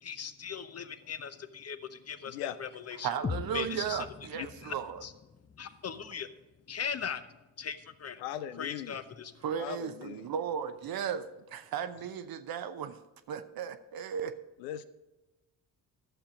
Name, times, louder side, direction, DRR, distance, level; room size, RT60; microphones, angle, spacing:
voice 1, 0.0-3.1 3.5-4.1 4.6-4.7 5.0-5.1 5.6-6.3 6.7-8.2 8.6-9.4, left 7 dB, 30° left, 0.8 m, -39 dB
voice 2, 2.3-2.6 4.3-4.5 8.2-9.0 9.6-10.3 14.6-14.8, left 11 dB, 75° left, 0.6 m, -39 dB
voice 3, 3.0-5.0 9.4-13.0 13.3-14.3, right 8 dB, 45° right, 0.8 m, -35 dB
sound 1, 3.2-7.2, left 6 dB, 15° left, 0.4 m, -42 dB
12.0 x 7.3 x 5.0 m
figure-of-eight pair, 45°, 50 cm